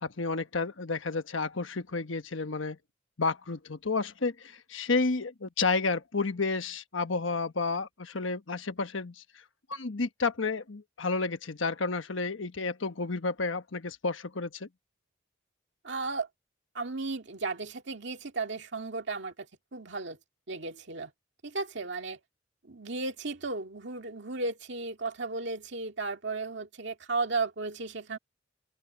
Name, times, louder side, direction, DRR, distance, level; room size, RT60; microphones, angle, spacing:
voice 1, 0.0-2.8 3.2-9.2 9.7-14.7, left 4 dB, 90° left, 1.2 m, -31 dB
voice 2, 15.8-16.3 16.7-19.5 19.7-20.2 20.5-21.1 21.4-22.2 22.6-28.2, right 3 dB, 65° right, 2.2 m, -34 dB
head